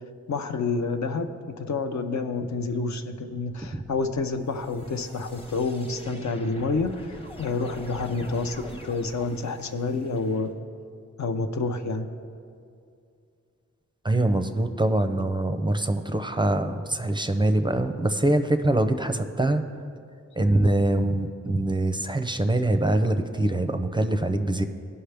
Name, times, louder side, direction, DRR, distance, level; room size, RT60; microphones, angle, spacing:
voice 1, 0.3-10.5 11.2-12.1, left 3 dB, 70° left, 6 dB, 0.6 m, -28 dB
sound 1, 3.4-10.5, left 1 dB, 20° left, 0.8 m, -44 dB
voice 2, 14.0-19.6 20.4-24.6, right 1 dB, 15° right, 7 dB, 0.5 m, -24 dB
16.5 x 5.5 x 3.4 m, 2.4 s
wide cardioid pair, 80°, 29 cm